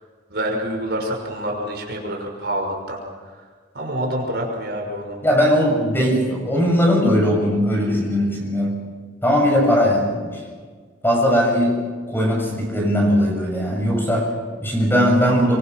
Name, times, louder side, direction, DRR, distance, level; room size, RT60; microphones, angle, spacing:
voice 1, 0.3-3.0 3.7-5.2, right 1 dB, 55° right, 1 dB, 6.0 m, -27 dB
voice 2, 5.2-8.9 9.2-10.4 11.0-15.6, equal, 10° left, 0 dB, 7.1 m, -19 dB
25.0 x 24.0 x 6.2 m, 1.5 s
head